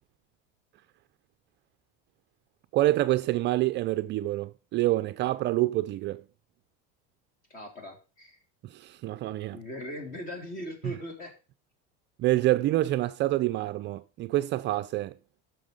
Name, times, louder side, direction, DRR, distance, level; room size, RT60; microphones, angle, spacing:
voice 1, 2.7-6.2 8.6-9.6 12.2-15.1, right 16 dB, 40° right, 0.5 m, -27 dB
voice 2, 7.5-8.4 9.5-11.4, left 1 dB, 30° left, 3.2 m, -39 dB
11.5 x 6.2 x 5.2 m
cardioid pair, 150°, 29 cm